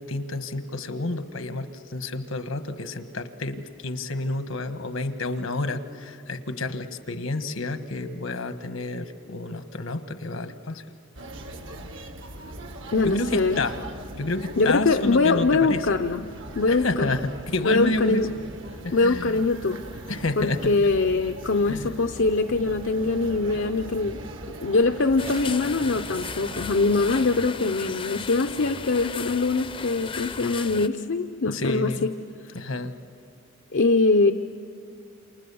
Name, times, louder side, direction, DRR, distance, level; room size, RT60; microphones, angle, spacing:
voice 1, 0.0-10.8 13.0-13.8 14.1-15.8 16.7-18.3 18.8-19.4 20.1-20.7 21.7-22.0 31.4-32.1 32.5-32.9, left 2 dB, 80° left, 9 dB, 1.3 m, -30 dB
sound 1, 11.2-27.4, right 1 dB, 65° right, 1.6 m, -40 dB
voice 2, 12.9-13.6 14.6-16.2 16.6-17.1 17.6-18.3 18.9-19.8 20.4-24.2 24.6-32.1 33.7-34.3, left 3 dB, 65° left, 6 dB, 0.7 m, -23 dB
sound 2, 25.2-30.9, left 5 dB, 25° left, 0.6 m, -36 dB
28.5 x 27.5 x 7.0 m, 2.4 s
head